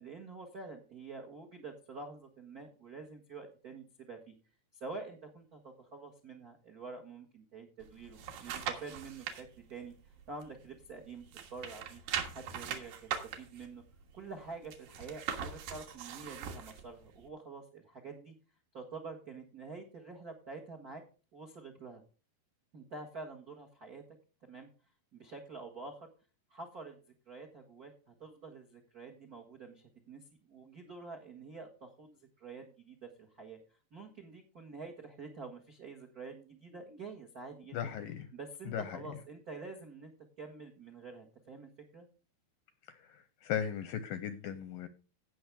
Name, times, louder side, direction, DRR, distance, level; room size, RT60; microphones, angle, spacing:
voice 1, 0.0-4.3 4.7-9.9 10.3-11.2 11.5-12.0 12.3-13.1 13.4-13.8 14.1-18.3 18.7-21.0 21.3-22.0 22.7-24.0 24.5-24.7 25.1-26.1 26.5-27.0 27.3-33.6 33.9-37.9 38.3-40.1 40.4-42.0, right 4 dB, 85° right, 0.8 m, -47 dB
sound 1, 7.8-9.4 9.9-11.0 11.3-16.8 17.3-17.4, right 8 dB, 70° right, 3.1 m, -40 dB
voice 2, 37.7-38.3 38.7-38.8 43.4-44.9, left 9 dB, 80° left, 2.1 m, -36 dB
17.0 x 6.2 x 3.4 m
omnidirectional pair, 4.6 m